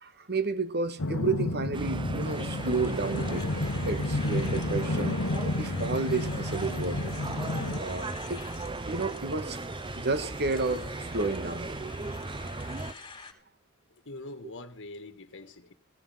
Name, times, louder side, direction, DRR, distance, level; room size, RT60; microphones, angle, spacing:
voice 1, 0.0-3.5 3.8-5.2 5.6-7.1 7.8-8.4 8.9-9.6 9.9-11.7 12.4-12.8, right 3 dB, 50° right, 1.8 m, -31 dB
sound 1, 1.0-7.8, left 2 dB, 75° left, 1.1 m, -31 dB
sound 2, 1.7-12.9, right 2 dB, 20° right, 0.7 m, -36 dB
sound 3, 2.2-13.3, left 4 dB, 25° left, 3.6 m, -47 dB
voice 2, 14.0-15.7, left 2 dB, 55° left, 1.7 m, -43 dB
16.5 x 14.0 x 5.8 m
head